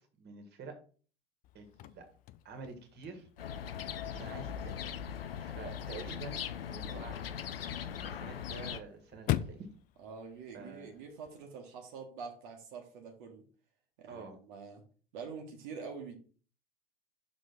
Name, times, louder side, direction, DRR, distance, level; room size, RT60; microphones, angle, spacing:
voice 1, 0.2-0.8 1.5-2.1 2.4-3.3 4.1-4.7 5.4-6.4 6.7-7.3 8.1-9.7 10.5-10.9 14.1-14.4, right 4 dB, 35° right, 5 dB, 1.8 m, -47 dB
Chirp tweet / Car / Slam, 1.4-11.4, left 14 dB, 30° left, 0.4 m, -43 dB
sound 1, 3.4-8.8, left 8 dB, 75° left, 0.6 m, -40 dB
voice 2, 10.0-13.4 14.0-14.8 15.1-16.1, right 5 dB, 55° right, 2 dB, 1.5 m, -46 dB
6.4 x 3.7 x 5.3 m, 0.40 s
figure-of-eight pair, 80°, 30 cm